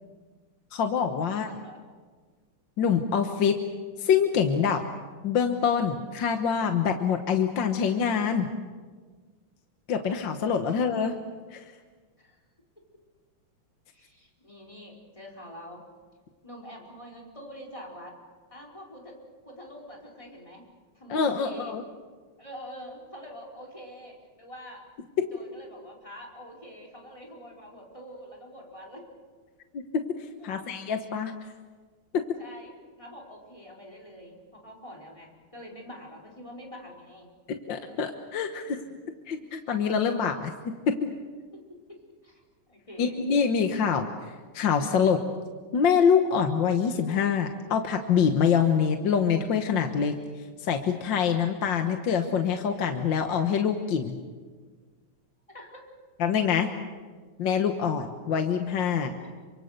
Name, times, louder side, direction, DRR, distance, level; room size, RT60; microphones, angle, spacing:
voice 1, 0.7-1.5 2.8-3.6 4.0-4.8 5.2-8.5 9.9-11.2 11.5-11.7 21.1-21.8 25.2-25.3 29.7-30.0 30.4-31.3 32.1-32.2 37.5-38.8 39.3-41.1 43.0-45.2 45.7-50.1 50.6-54.2 56.2-56.7 57.4-59.1, left 7 dB, 65° left, 5 dB, 1.9 m, -25 dB
voice 2, 1.2-1.8 10.7-10.8 12.2-12.4 12.8-12.9 13.9-15.8 16.4-18.1 18.5-20.6 20.9-21.8 22.4-24.8 25.3-29.1 30.4-30.7 32.4-37.3 38.6-39.0 41.5-41.6 41.9-42.4 42.7-43.2 55.5-55.9, equal, 15° left, -2 dB, 4.7 m, -46 dB
27.5 x 25.5 x 6.7 m, 1.5 s
omnidirectional pair, 2.3 m